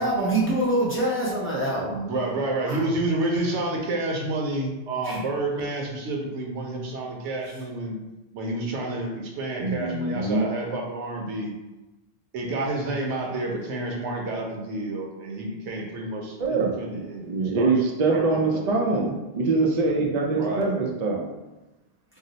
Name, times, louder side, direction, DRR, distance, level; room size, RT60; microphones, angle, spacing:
voice 1, 0.0-2.0 2.7-2.8 5.0-5.2, right 1 dB, 15° left, -7 dB, 0.5 m, -25 dB
voice 2, 1.8-8.0 8.3-11.5 12.3-17.3 17.5-17.8 18.1-18.6 20.3-20.7, right 2 dB, 90° right, 0 dB, 1.0 m, -29 dB
voice 3, 9.6-10.5 16.4-21.3, right 3 dB, 55° right, 0 dB, 0.5 m, -24 dB
2.6 x 2.0 x 3.9 m, 1.1 s
omnidirectional pair, 1.1 m